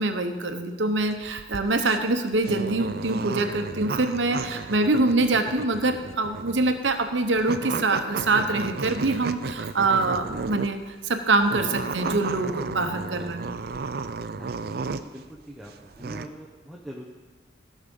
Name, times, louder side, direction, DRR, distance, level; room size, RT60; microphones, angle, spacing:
voice 1, 0.0-10.8 11.0-13.5, right 2 dB, 75° right, 7 dB, 1.0 m, -24 dB
sound 1, 1.0-10.8 11.4-15.2 15.6-16.3, right 4 dB, 55° right, 0.4 m, -33 dB
voice 2, 14.3-14.7 15.0-17.1, equal, ahead, -3 dB, 0.8 m, -43 dB
16.5 x 6.4 x 5.4 m, 1.3 s
head